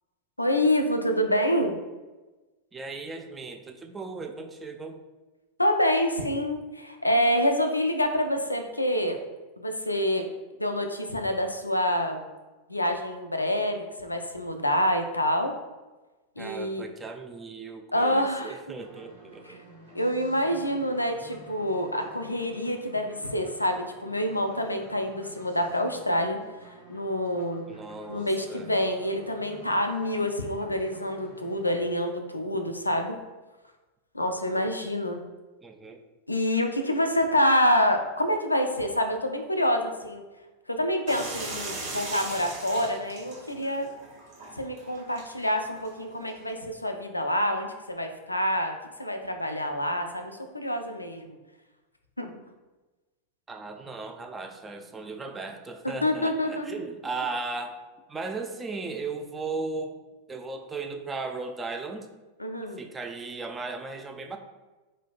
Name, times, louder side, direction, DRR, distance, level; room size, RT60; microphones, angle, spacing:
voice 1, 0.4-1.8 5.6-9.2 9.6-10.3 10.6-12.2 12.7-15.5 16.4-16.8 17.9-18.6 19.9-26.4 26.9-27.7 28.1-33.2 34.1-35.2 36.3-40.2 40.7-43.9 44.6-51.4 52.2-52.3 55.8-56.7 62.4-62.8, equal, 85° left, 5 dB, 0.3 m, -27 dB
voice 2, 2.7-5.0 16.4-19.6 27.7-28.7 35.6-36.0 53.5-57.8 58.1-60.0 60.3-62.1 62.8-64.4, right 3 dB, 15° right, 5 dB, 0.3 m, -36 dB
sound 1, 18.8-31.8, right 1 dB, 85° right, 1.1 m, -50 dB
sound 2, 41.1-46.5, right 2 dB, 50° right, 1.1 m, -39 dB
3.9 x 3.1 x 2.5 m, 1.2 s
figure-of-eight pair, 90°, 0 cm